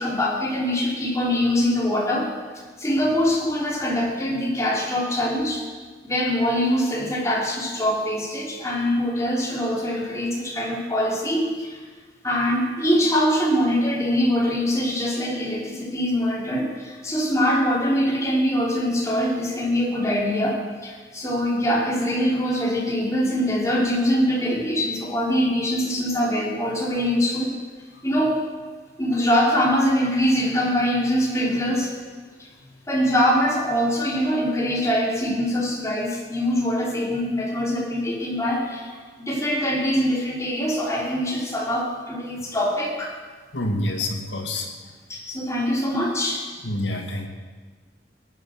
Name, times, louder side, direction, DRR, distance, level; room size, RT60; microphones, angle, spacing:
voice 1, 0.0-2.3 2.8-5.6 6.0-11.8 12.2-27.5 28.0-28.4 29.0-31.9 32.4-32.5 32.9-43.1 45.1-46.4, equal, 15° left, -3 dB, 3.1 m, -23 dB
voice 2, 43.5-44.7 46.6-47.3, left 1 dB, 80° left, 2 dB, 2.3 m, -27 dB
19.0 x 9.5 x 6.4 m, 1.4 s
head